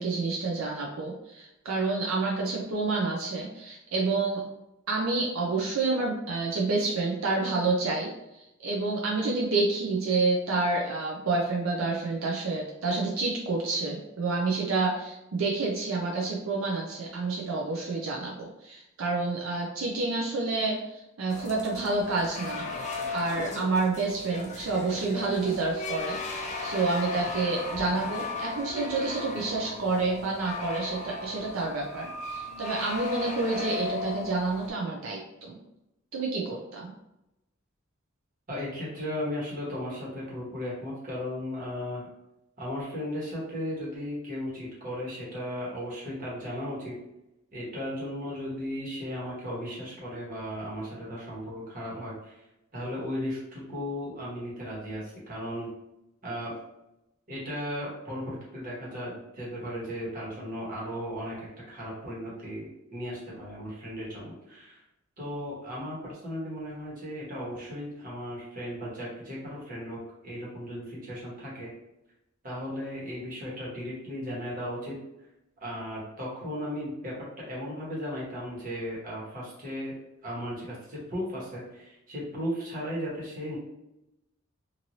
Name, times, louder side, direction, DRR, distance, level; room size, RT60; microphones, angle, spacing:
voice 1, 0.0-4.5 4.9-8.1 8.6-35.6 36.1-36.9, right 3 dB, 85° right, -1 dB, 0.5 m, -29 dB
sound 1, 21.3-34.7, left 3 dB, 35° left, 0.4 m, -36 dB
voice 2, 38.5-42.0 42.6-46.9 47.5-52.4 52.7-55.7 56.2-56.5 57.3-64.8 65.2-71.7 72.4-75.0 75.6-79.9 80.2-83.6, equal, 45° right, -6 dB, 1.3 m, -36 dB
3.0 x 2.6 x 2.7 m, 0.90 s
head